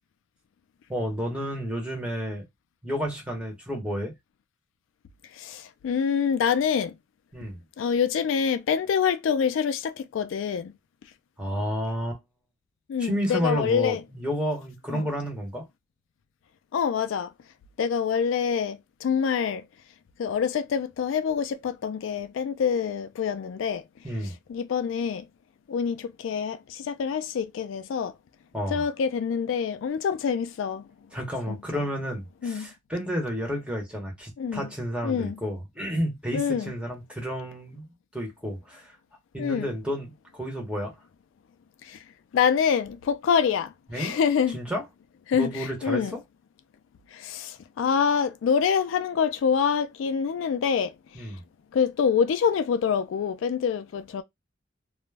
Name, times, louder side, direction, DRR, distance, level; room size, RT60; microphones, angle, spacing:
voice 1, 0.9-2.4 2.8-4.2 7.3-7.6 11.4-12.2 13.0-15.7 24.0-24.3 28.5-28.8 31.1-37.9 38.1-39.0 39.3-40.9 43.9-44.2 44.5-44.8 45.3-46.2 51.1-51.4, equal, 5° right, 0.8 m, -31 dB
voice 2, 5.4-7.0 7.8-10.7 12.9-14.0 14.9-15.0 16.7-17.3 17.8-19.6 20.2-23.8 24.5-25.2 25.7-28.1 28.7-30.9 31.5-31.6 32.4-32.7 34.4-34.7 35.0-35.3 36.3-36.7 39.4-39.7 41.8-42.0 42.3-44.6 45.3-46.2 47.1-50.9 51.7-54.2, left 7 dB, 80° left, 0.3 m, -26 dB
2.3 x 2.0 x 3.2 m
head